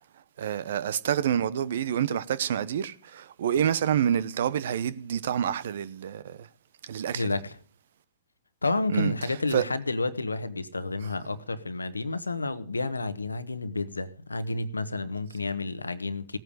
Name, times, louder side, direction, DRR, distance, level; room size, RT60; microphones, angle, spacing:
voice 1, 0.4-6.5 6.8-7.3 8.9-9.1 9.5-9.6, right 9 dB, 60° right, 0.9 m, -27 dB
voice 2, 7.1-7.6 8.6-16.4, left 3 dB, 90° left, 1.2 m, -30 dB
17.0 x 9.1 x 5.0 m
figure-of-eight pair, 115°, 0 cm